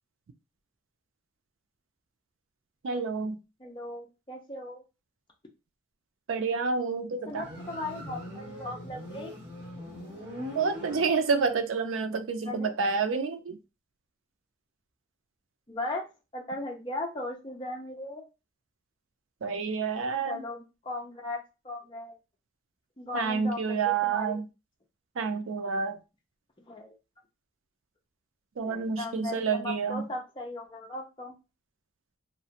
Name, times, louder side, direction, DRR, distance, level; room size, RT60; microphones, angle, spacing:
voice 1, 2.8-3.4 6.3-7.5 10.5-13.6 19.4-20.4 23.1-24.5 25.2-26.0 28.6-30.1, right 5 dB, 90° right, 8 dB, 0.4 m, -29 dB
voice 2, 3.6-4.8 7.3-9.3 12.4-12.7 15.7-16.1 16.3-18.2 20.2-22.2 23.0-24.4 26.7-26.9 28.6-31.3, left 2 dB, 25° left, 0 dB, 0.5 m, -37 dB
Motorcycle, 7.3-11.7, equal, 60° right, 1.0 m, -41 dB
2.4 x 2.1 x 2.8 m, 0.28 s
head